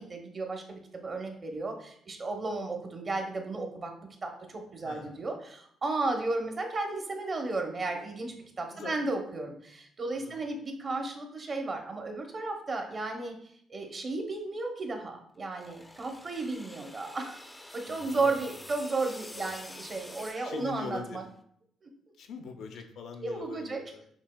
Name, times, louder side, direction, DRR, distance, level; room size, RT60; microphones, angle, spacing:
voice 1, 0.0-3.9 4.2-13.4 13.7-17.4 17.7-21.2 21.8-21.9 23.2-23.8, right 3 dB, 40° right, 3 dB, 0.7 m, -34 dB
voice 2, 4.8-5.2 8.7-9.0 10.1-10.4 17.9-18.8 19.3-19.6 20.4-21.2 22.2-24.1, left 5 dB, 75° left, 6 dB, 0.5 m, -43 dB
sound 1, 15.4-21.3, left 1 dB, 10° left, 0.3 m, -48 dB
5.9 x 2.5 x 2.2 m, 0.65 s
cardioid pair, 90°, 0 cm